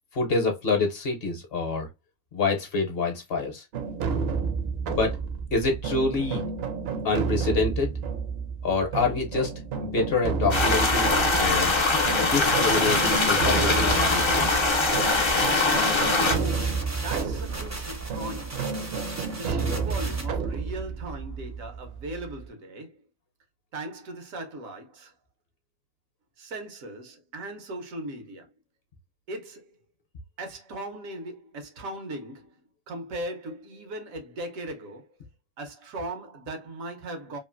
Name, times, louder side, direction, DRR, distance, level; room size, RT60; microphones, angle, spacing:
voice 1, 0.1-1.9 2.3-3.6 4.9-5.2 5.5-6.4 7.0-7.9 8.6-9.5 9.8-11.1 11.4-11.7 12.3-14.5, left 3 dB, 55° left, 0.8 m, -26 dB
sound 1, 3.7-22.4, right 5 dB, 60° right, 0.7 m, -31 dB
sound 2, 10.5-16.4, left 3 dB, 35° left, 0.4 m, -22 dB
sound 3, 12.7-20.3, right 1 dB, 25° right, 0.4 m, -38 dB
voice 2, 16.3-18.7 19.3-23.0 23.7-25.1 26.4-28.5 29.3-29.8 30.4-32.6 32.9-35.1 35.6-37.4, right 1 dB, 85° right, 1.3 m, -38 dB
3.0 x 2.4 x 2.4 m
omnidirectional pair, 1.4 m